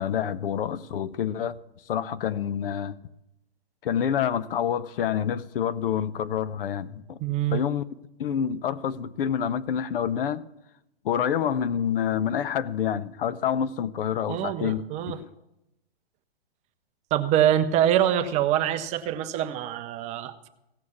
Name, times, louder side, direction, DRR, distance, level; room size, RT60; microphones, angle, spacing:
voice 1, 0.0-1.6 1.9-3.0 3.8-7.2 7.5-7.8 8.2-10.5 11.0-15.3, left 8 dB, 60° left, 0.7 m, -27 dB
voice 2, 7.2-7.6 14.3-15.2 17.1-20.5, right 11 dB, 20° right, 0.6 m, -24 dB
16.5 x 6.3 x 7.0 m
hypercardioid pair, 130°, 31 cm